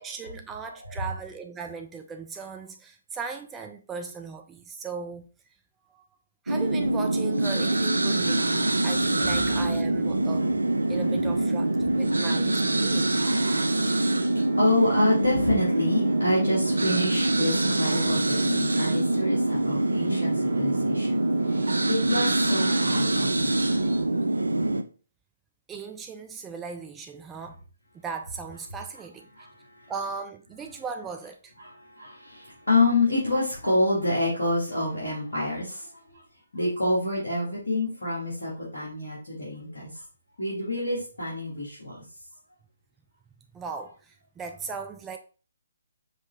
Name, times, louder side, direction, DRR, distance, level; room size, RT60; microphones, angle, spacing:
voice 1, 0.0-5.3 6.4-13.2 25.7-27.6 27.9-29.3 29.9-31.5 43.5-45.2, right 5 dB, 10° right, 0.3 m, -38 dB
voice 2, 0.7-1.1 11.9-12.0 12.8-23.7 29.3-29.9 31.6-36.2 36.5-40.0 40.4-42.0, left 2 dB, 75° left, 1.9 m, -28 dB
sound 1, 6.5-24.8, right 2 dB, 75° right, 0.5 m, -24 dB
sound 2, 10.9-24.0, right 4 dB, 50° right, 1.0 m, -43 dB
5.2 x 3.1 x 3.2 m
figure-of-eight pair, 135°, 0 cm